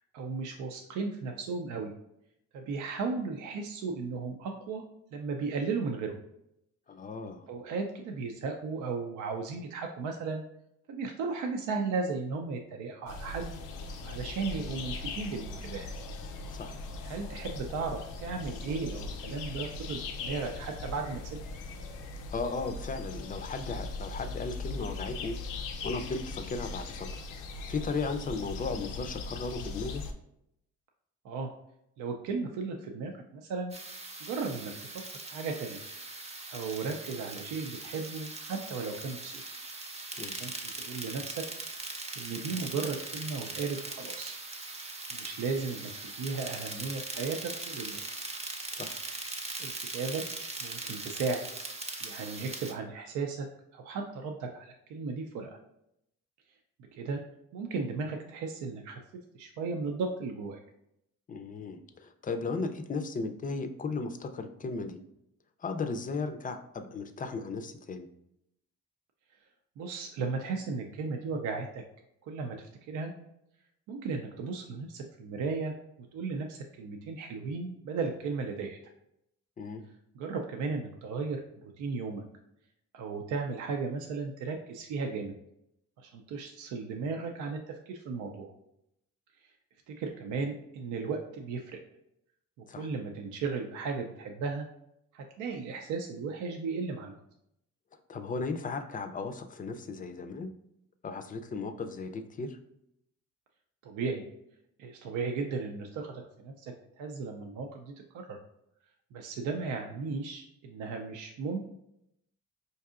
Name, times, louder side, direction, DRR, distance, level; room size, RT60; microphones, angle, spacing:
voice 1, 0.1-1.9 2.5-4.8 5.1-6.1 7.5-10.4 10.9-13.5 14.0-15.9 17.0-21.4 31.2-31.5 32.0-33.8 34.2-35.0 35.3-35.8 36.5-39.4 40.4-41.4 42.1-44.3 45.1-45.9 46.2-48.0 49.6-50.2 50.6-51.4 52.0-53.5 53.7-55.6 56.9-57.2 57.5-59.0 59.3-60.6 69.8-71.8 72.2-72.6 72.9-73.1 73.9-75.7 76.1-78.8 80.1-82.2 82.9-85.3 86.0-88.5 89.9-91.8 92.8-94.7 95.1-97.2 103.8-104.2 104.8-108.4 109.1-111.6, right 4 dB, 80° right, 3 dB, 0.5 m, -35 dB
voice 2, 6.9-7.5 16.5-16.8 22.3-25.3 25.8-27.2 27.7-30.0 40.2-40.5 48.7-49.0 61.3-65.0 65.6-68.1 79.6-79.8 92.7-92.9 98.1-100.5 101.0-102.6, left 4 dB, 30° left, 8 dB, 0.4 m, -36 dB
sound 1, 13.1-30.1, left 3 dB, 85° left, 0.5 m, -39 dB
sound 2, 33.7-52.7, right 3 dB, 20° right, 0.6 m, -40 dB
4.6 x 2.6 x 2.4 m, 0.78 s
cardioid pair, 90°, 30 cm